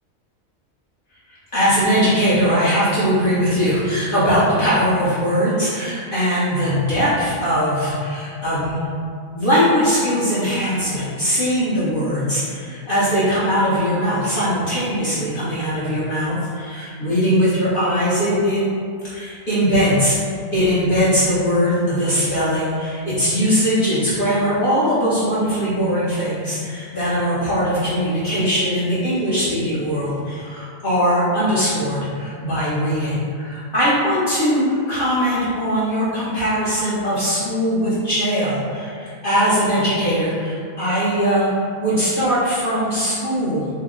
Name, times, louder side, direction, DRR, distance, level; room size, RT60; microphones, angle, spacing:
voice 1, 1.3-8.8 9.3-18.6 19.1-20.2 20.5-43.7, equal, 50° left, -11 dB, 0.7 m, -20 dB
2.7 x 2.0 x 3.6 m, 2.3 s
omnidirectional pair, 1.4 m